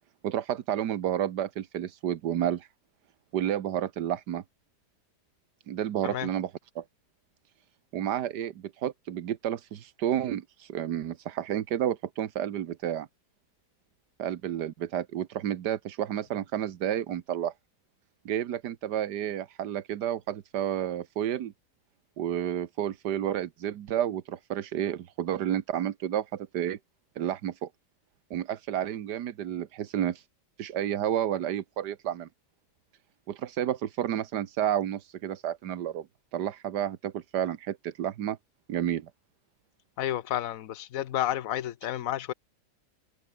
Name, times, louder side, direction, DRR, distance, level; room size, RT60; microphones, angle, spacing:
voice 1, 0.2-2.7 3.3-4.4 5.7-6.5 6.7-6.8 7.9-13.1 14.2-17.5 18.2-21.5 22.2-26.8 27.2-27.7 28.3-30.3 30.6-32.3 33.3-36.1 36.3-38.4 38.7-39.1, right 10 dB, 85° right, 1.6 m, -31 dB
voice 2, 40.0-42.3, left 12 dB, 60° left, 1.2 m, -31 dB
omnidirectional pair, 1.7 m